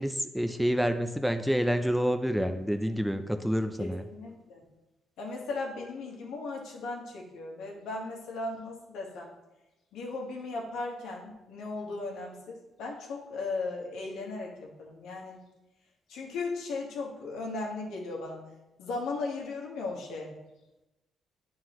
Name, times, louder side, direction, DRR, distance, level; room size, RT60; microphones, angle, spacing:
voice 1, 0.0-4.0, equal, ahead, 8 dB, 0.4 m, -28 dB
voice 2, 3.8-4.6 5.2-9.3 9.9-15.4 16.1-18.4 18.8-20.3, left 3 dB, 85° left, -1 dB, 1.3 m, -37 dB
9.2 x 3.8 x 3.0 m, 1.0 s
cardioid pair, 90°, 0 cm